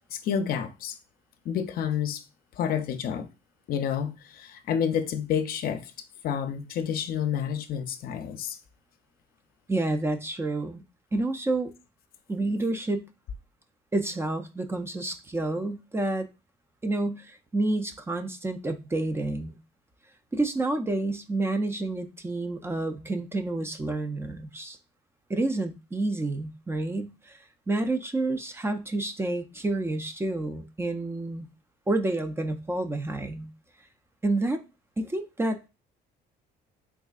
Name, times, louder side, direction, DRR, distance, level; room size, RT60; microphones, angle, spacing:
voice 1, 0.1-1.0 1.5-2.2 2.6-3.3 3.7-5.9 6.2-8.6, left 8 dB, 60° left, 0.5 m, -29 dB
voice 2, 9.7-10.8 11.1-11.7 12.3-13.1 13.9-16.3 16.8-19.6 20.3-24.8 25.3-27.4 27.7-31.5 31.9-33.5 34.2-34.6 35.0-35.6, right 2 dB, 15° right, 0.4 m, -29 dB
3.5 x 3.2 x 2.3 m
cardioid pair, 110°, 17 cm